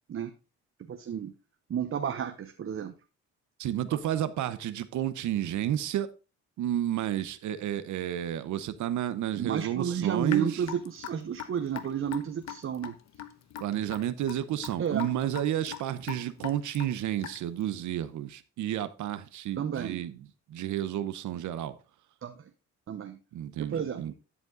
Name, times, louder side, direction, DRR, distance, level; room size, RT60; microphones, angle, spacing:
voice 1, 0.9-1.3 1.7-2.9 3.9-4.0 9.4-13.0 14.8-15.1 19.6-20.0 22.2-22.5 22.9-23.2 23.6-24.1, right 8 dB, 45° right, 7 dB, 0.9 m, -32 dB
voice 2, 3.6-6.1 6.6-10.5 13.6-20.2 20.5-21.8 23.3-24.1, right 11 dB, 75° right, 13 dB, 0.8 m, -31 dB
Raindrop / Drip, 10.3-17.6, left 9 dB, 65° left, 1.0 m, -41 dB
11.0 x 5.1 x 3.8 m, 0.32 s
cardioid pair, 90°, 30 cm